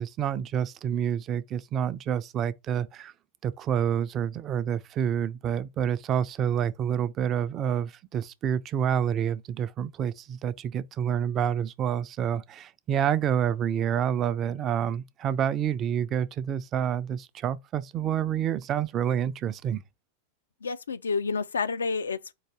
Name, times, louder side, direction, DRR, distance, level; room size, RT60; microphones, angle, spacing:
voice 1, 0.0-3.1 3.4-19.8, right 9 dB, 30° right, 0.4 m, -28 dB
voice 2, 20.6-22.3, left 4 dB, 70° left, 0.3 m, -29 dB
4.7 x 2.5 x 4.4 m
figure-of-eight pair, 90°, 0 cm